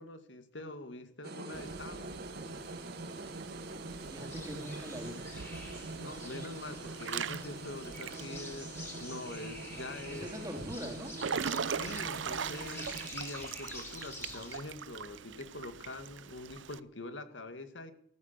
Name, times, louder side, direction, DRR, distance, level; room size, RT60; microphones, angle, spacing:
voice 1, 0.0-2.2 6.0-10.3 11.7-17.9, left 2 dB, 75° left, 9 dB, 2.0 m, -44 dB
sound 1, 1.2-13.1, right 2 dB, 60° right, 2.2 m, -44 dB
Water / Splash splatter / Drip, 1.5-16.8, right 6 dB, 90° right, 0.7 m, -42 dB
voice 2, 4.1-5.2 10.1-11.2, equal, 20° right, 3 dB, 3.4 m, -42 dB
sound 2, 4.2-14.6, left 2 dB, 15° left, 4.9 m, -49 dB
14.5 x 14.0 x 6.7 m, 0.67 s
head